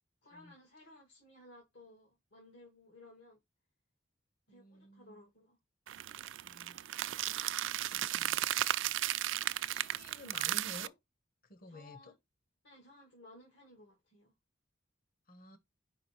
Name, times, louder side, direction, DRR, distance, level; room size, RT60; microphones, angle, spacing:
voice 1, 0.2-3.4 4.5-5.6 11.7-12.1 12.6-14.3, left 2 dB, 85° left, 2.4 m, -58 dB
voice 2, 4.5-5.2 6.4-6.8 7.9-8.4 9.7-11.0 11.5-12.1 15.3-15.6, left 1 dB, 50° left, 1.0 m, -52 dB
sound 1, 5.9-10.9, right 13 dB, 75° right, 0.4 m, -35 dB
4.9 x 4.8 x 4.6 m
head